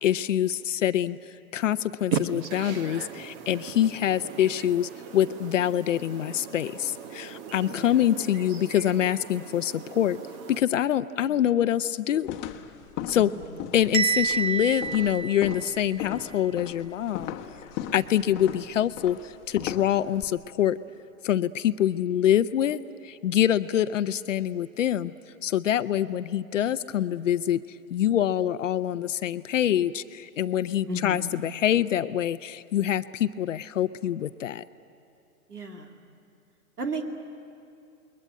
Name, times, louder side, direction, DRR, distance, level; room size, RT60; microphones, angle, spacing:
voice 1, 0.0-1.2 1.5-10.2 10.5-12.3 13.1-13.3 13.7-17.4 17.9-20.8 21.2-25.1 25.4-27.6 27.9-34.6, left 11 dB, 55° left, 14 dB, 0.8 m, -25 dB
sound 1, 2.1-10.6, right 7 dB, 25° right, 1.1 m, -38 dB
sound 2, 12.2-20.2, left 10 dB, 25° left, 1.2 m, -38 dB
Bell, 13.9-16.0, right 6 dB, 60° right, 1.7 m, -28 dB
voice 2, 30.9-31.3 35.5-35.9 36.8-37.1, right 1 dB, 85° right, 3 dB, 2.7 m, -33 dB
28.0 x 22.0 x 9.3 m, 2.6 s
hypercardioid pair, 125°, 45 cm